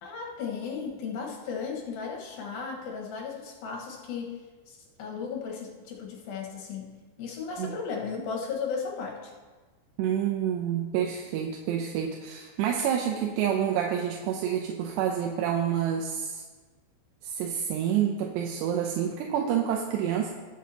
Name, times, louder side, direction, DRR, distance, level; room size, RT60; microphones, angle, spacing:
voice 1, 0.0-6.9 7.2-9.3, left 5 dB, 65° left, -2 dB, 2.8 m, -35 dB
voice 2, 10.0-16.4 17.2-20.3, right 9 dB, 80° right, 1 dB, 2.7 m, -28 dB
19.5 x 7.6 x 2.8 m, 1.3 s
omnidirectional pair, 5.3 m